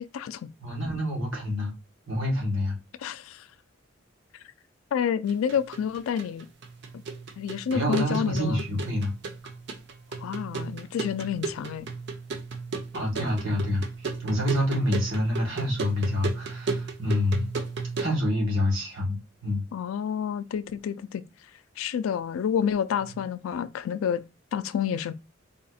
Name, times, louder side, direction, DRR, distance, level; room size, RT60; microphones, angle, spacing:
voice 1, 0.0-0.5 3.0-3.4 4.9-6.5 7.4-8.6 10.2-11.9 19.7-21.2 21.8-24.2 24.5-25.1, left 8 dB, 90° left, 0.3 m, -29 dB
voice 2, 0.6-1.7 2.1-2.8 7.7-9.1 12.9-17.5 18.0-19.6, left 1 dB, 80° right, 1.6 m, -27 dB
sound 1, 5.3-18.1, right 4 dB, 60° right, 0.6 m, -35 dB
3.9 x 2.6 x 2.3 m
head